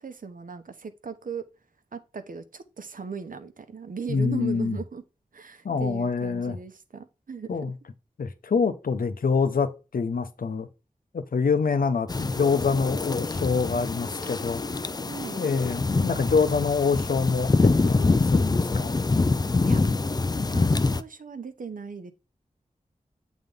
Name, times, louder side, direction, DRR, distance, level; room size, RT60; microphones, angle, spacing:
voice 1, 0.0-1.4 1.9-5.0 5.3-7.6 15.1-15.5 19.7-19.8 20.5-22.1, right 5 dB, 75° right, 0.9 m, -38 dB
voice 2, 4.1-4.8 5.6-6.6 7.5-7.7 8.2-10.7 11.1-14.9 15.4-19.0, left 5 dB, 85° left, 0.8 m, -26 dB
sound 1, 12.1-21.0, left 3 dB, 30° left, 0.4 m, -25 dB
8.1 x 3.7 x 3.6 m
wide cardioid pair, 90°, 14 cm